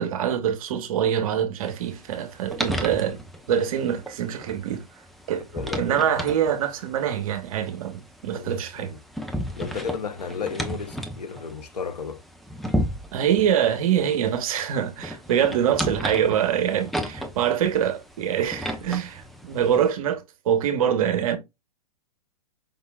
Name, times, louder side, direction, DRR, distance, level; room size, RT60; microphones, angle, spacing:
voice 1, 0.0-3.2 3.5-4.8 5.3-5.5 5.8-8.9 13.1-21.4, right 9 dB, 60° right, 1.2 m, -24 dB
sound 1, 1.6-19.9, equal, ahead, 0.8 m, -34 dB
voice 2, 5.5-6.1 8.3-9.0 9.6-12.2, left 5 dB, 90° left, 1.0 m, -33 dB
5.5 x 3.6 x 2.4 m
hypercardioid pair, 120°, 20 cm